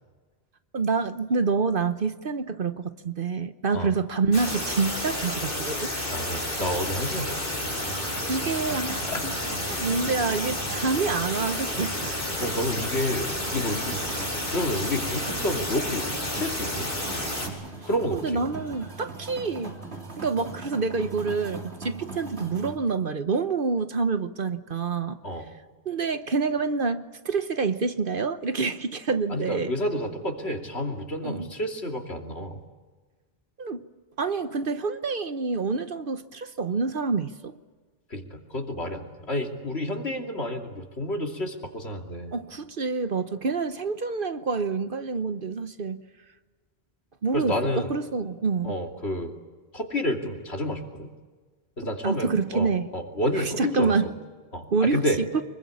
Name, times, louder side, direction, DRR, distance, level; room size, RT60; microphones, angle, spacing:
voice 1, 0.7-5.9 8.3-9.3 9.7-11.9 18.1-19.7 20.2-25.2 25.9-29.7 31.2-31.5 33.6-33.8 34.2-37.5 42.3-46.0 47.2-48.7 52.0-52.9 53.4-54.1 54.7-55.1, right 4 dB, 60° right, 11 dB, 1.1 m, -27 dB
sound 1, 4.3-17.5, left 1 dB, 55° left, 5.5 m, -31 dB
voice 2, 6.1-7.4 8.1-8.3 9.1-9.2 12.4-14.0 14.5-16.9 17.8-18.5 25.2-25.5 29.3-32.6 38.1-42.3 47.3-47.9 48.6-49.4 49.7-51.1 51.8-54.1 54.5-55.2, left 1 dB, 85° left, 3 dB, 3.1 m, -30 dB
sound 2, 7.6-22.8, right 4 dB, 85° right, 3.5 m, -40 dB
25.0 x 22.0 x 8.6 m, 1.4 s
omnidirectional pair, 1.1 m